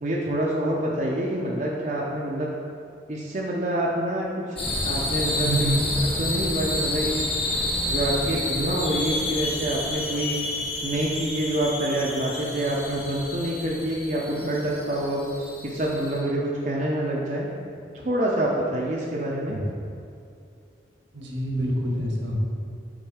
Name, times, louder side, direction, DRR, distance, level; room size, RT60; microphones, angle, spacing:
voice 1, 0.0-2.6 3.1-5.7 6.2-7.3 7.9-10.4 10.8-15.3 15.6-17.5 17.9-19.6, right 1 dB, 40° right, -4 dB, 0.5 m, -27 dB
sound 1, 4.6-16.2, left 1 dB, 30° left, 1.1 m, -29 dB
voice 2, 5.4-5.8 19.5-19.6 21.1-22.4, right 1 dB, 80° right, -1 dB, 1.2 m, -26 dB
6.3 x 3.8 x 4.8 m, 2.5 s
head